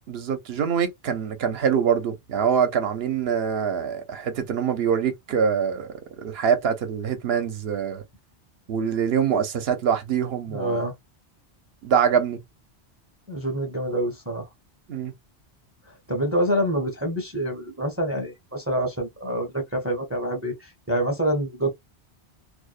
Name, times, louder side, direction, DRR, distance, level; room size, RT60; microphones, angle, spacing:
voice 1, 0.1-5.9 6.2-8.0 8.7-10.8 11.8-12.4 14.9-15.1, right 7 dB, 65° right, 0.8 m, -24 dB
voice 2, 10.5-10.9 13.3-14.5 15.9-21.7, equal, 15° right, 0.5 m, -26 dB
2.5 x 2.0 x 2.4 m
omnidirectional pair, 1.1 m